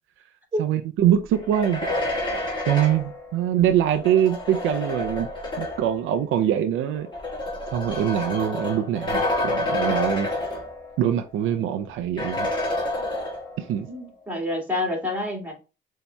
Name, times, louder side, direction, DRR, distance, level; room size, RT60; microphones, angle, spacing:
voice 1, 0.6-1.8 2.3-5.3 5.6-7.1 7.7-10.3 11.0-12.5 13.6-13.9, right 10 dB, 85° right, 0.5 m, -23 dB
sound 1, 1.3-6.0 6.9-11.1 11.4-11.5 12.2-13.7, left 1 dB, 25° left, 1.6 m, -29 dB
voice 2, 13.9-15.5, left 1 dB, 10° right, 2.0 m, -28 dB
6.9 x 2.8 x 2.2 m
cardioid pair, 90°, 20 cm